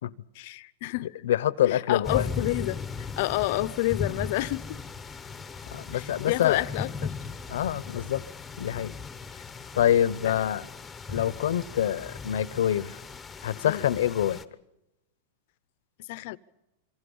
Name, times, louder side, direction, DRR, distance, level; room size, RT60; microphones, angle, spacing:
voice 1, 0.3-1.1 1.7-4.8 5.9-7.1 9.3-9.4 10.2-10.3 13.7-13.9 16.1-16.4, left 18 dB, 55° left, 0.8 m, -30 dB
voice 2, 1.2-2.3 5.7-6.6 7.5-8.2 8.6-8.9 9.7-10.6 11.1-13.0 13.4-14.4, left 11 dB, 80° left, 0.9 m, -25 dB
sound 1, 2.0-14.4, left 5 dB, 10° left, 1.0 m, -37 dB
26.0 x 24.0 x 5.6 m
supercardioid pair, 160°, 0 cm